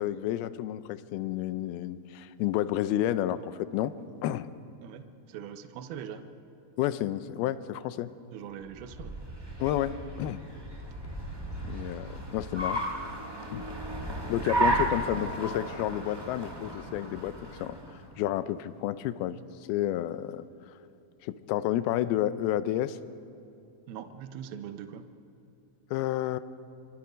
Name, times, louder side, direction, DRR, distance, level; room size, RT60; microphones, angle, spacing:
voice 1, 0.0-4.5 6.8-8.1 9.6-10.4 11.6-12.8 13.5-13.6 14.3-17.8 18.2-19.4 19.7-20.4 21.2-23.0 25.9-26.4, left 13 dB, 80° left, 13 dB, 2.6 m, -30 dB
voice 2, 4.8-6.3 8.3-9.1 14.7-14.8 23.9-25.1, right 9 dB, 75° right, 8 dB, 2.8 m, -42 dB
Car, 8.6-18.1, right 1 dB, 25° right, 0.5 m, -34 dB
27.0 x 24.5 x 5.2 m, 2.7 s
omnidirectional pair, 4.4 m